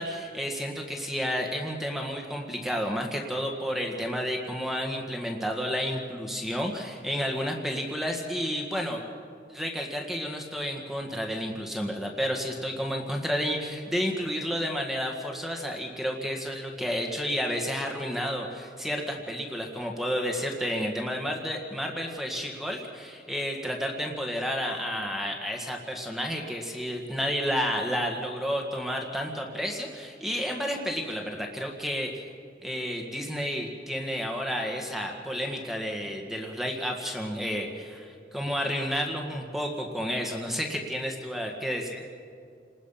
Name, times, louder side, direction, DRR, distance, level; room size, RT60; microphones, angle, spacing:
voice 1, 0.0-9.0 9.5-32.2 32.6-42.0, equal, ahead, 2 dB, 1.9 m, -31 dB
30.0 x 20.0 x 5.8 m, 2.4 s
head